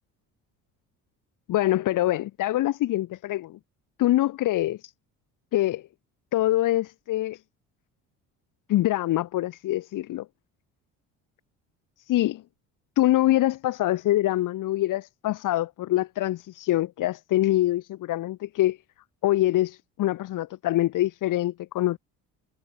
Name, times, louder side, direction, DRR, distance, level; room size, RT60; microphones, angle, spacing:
voice 1, 1.5-3.6 4.0-4.9 5.5-5.8 6.3-7.4 8.7-10.3 12.1-12.4 13.0-18.8 19.2-22.0, left 15 dB, 65° left, 2.0 m, -24 dB
supercardioid pair, 90°, 34 cm